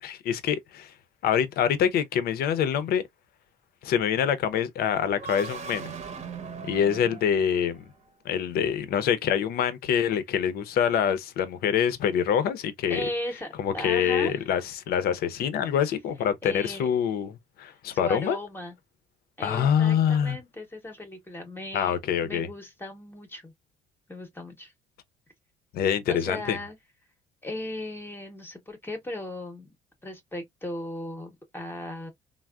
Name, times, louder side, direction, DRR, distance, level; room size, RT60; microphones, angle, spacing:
voice 1, 0.0-0.9 1.2-3.0 3.8-5.9 6.6-7.8 8.2-13.1 13.6-18.4 19.4-20.4 21.7-22.5 25.7-26.6, left 8 dB, 65° left, 0.5 m, -25 dB
sound 1, 5.1-8.1, right 6 dB, 45° right, 0.8 m, -39 dB
voice 2, 12.9-13.5 13.7-14.4 16.4-16.9 17.9-18.7 19.4-22.0 22.2-23.5 24.1-24.7 26.1-26.8 27.4-29.7 30.0-32.1, left 1 dB, 15° left, 0.7 m, -37 dB
3.4 x 2.0 x 2.3 m
cardioid pair, 110°, 17 cm